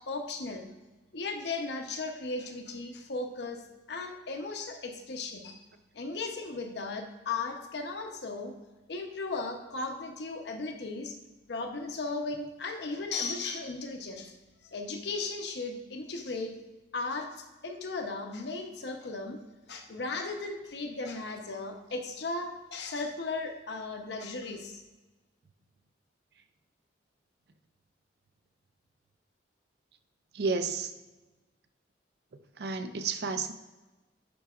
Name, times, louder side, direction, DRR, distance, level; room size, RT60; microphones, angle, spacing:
voice 1, 0.1-0.7 1.1-3.6 3.9-5.6 5.9-8.5 8.9-11.1 11.5-14.3 14.6-16.5 16.9-19.4 19.7-24.8, left 3 dB, 65° left, 4 dB, 0.7 m, -36 dB
voice 2, 30.3-30.9 32.6-33.5, right 4 dB, 60° right, 9 dB, 0.4 m, -31 dB
10.0 x 4.6 x 2.4 m, 1.2 s
head